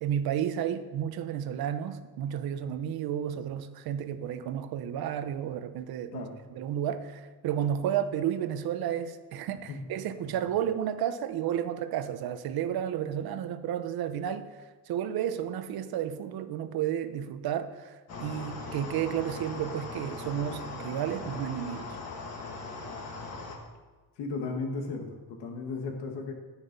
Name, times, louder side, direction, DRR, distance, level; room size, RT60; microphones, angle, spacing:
voice 1, 0.0-14.6 14.9-21.9, right 10 dB, 65° right, 0.9 m, -32 dB
sound 1, 18.1-23.6, left 3 dB, 35° left, 1.7 m, -40 dB
voice 2, 24.2-26.3, left 4 dB, 90° left, 2.0 m, -35 dB
10.0 x 10.0 x 5.4 m
cardioid pair, 160°, 40 cm